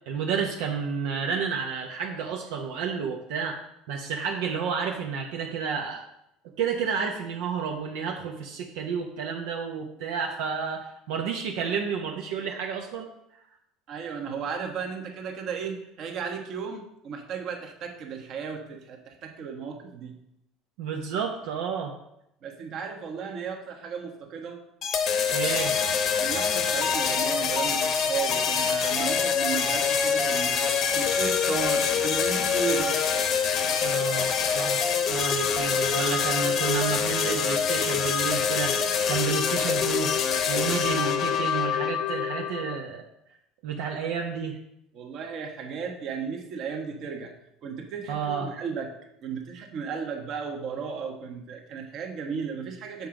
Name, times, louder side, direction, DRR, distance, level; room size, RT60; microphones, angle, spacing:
voice 1, 0.1-3.6 3.9-6.0 6.6-13.1 20.8-21.9 25.3-25.7 33.8-34.8 35.1-38.8 39.1-40.1 40.5-43.0 43.6-44.6 48.1-48.5, right 6 dB, 80° right, 1 dB, 0.8 m, -30 dB
voice 2, 13.9-20.1 22.4-24.6 26.2-33.0 33.9-34.3 44.9-47.3 47.6-48.9 49.2-53.1, right 6 dB, 50° right, 4 dB, 1.2 m, -35 dB
sound 1, 24.8-42.8, left 6 dB, 50° left, 0.9 m, -25 dB
7.0 x 3.8 x 5.9 m, 0.80 s
supercardioid pair, 110°, 0 cm